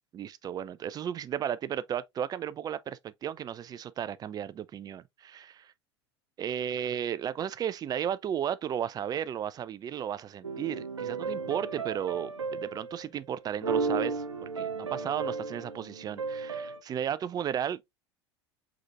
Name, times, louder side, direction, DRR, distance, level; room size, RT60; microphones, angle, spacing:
voice 1, 0.1-5.5 6.4-17.8, right 9 dB, 25° right, 0.4 m, -34 dB
sound 1, 10.4-13.1 13.5-16.8, right 4 dB, 85° right, 0.6 m, -34 dB
4.9 x 4.0 x 2.4 m
figure-of-eight pair, 80°, 15 cm